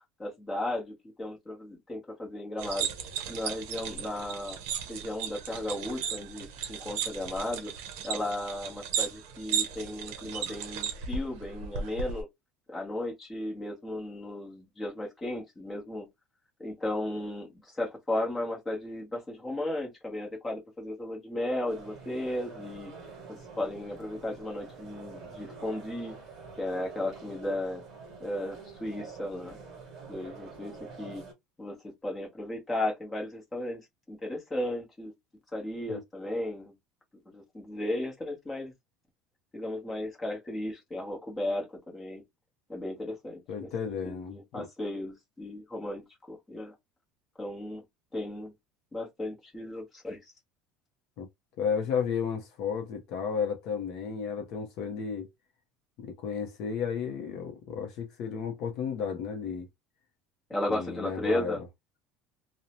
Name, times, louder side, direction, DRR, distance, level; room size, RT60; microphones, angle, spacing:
voice 1, 0.2-2.9 3.3-4.6 4.9-7.7 8.0-12.3 12.7-16.1 16.6-22.9 23.3-26.1 26.6-27.8 28.2-29.6 30.1-31.2 31.6-31.8 32.0-35.1 35.5-36.7 37.3-38.7 39.5-42.2 42.7-43.7 44.0-46.7 47.4-47.8 48.1-48.5 48.9-50.3 60.5-61.6, left 1 dB, 10° left, 0.8 m, -35 dB
sound 1, 2.6-12.2, right 7 dB, 70° right, 0.6 m, -35 dB
sound 2, 21.7-31.3, right 5 dB, 30° right, 1.1 m, -47 dB
voice 2, 43.5-44.7 51.2-51.3 51.6-55.3 56.0-59.7 60.7-61.6, left 6 dB, 45° left, 0.5 m, -33 dB
2.6 x 2.0 x 2.8 m
cardioid pair, 175°, 0 cm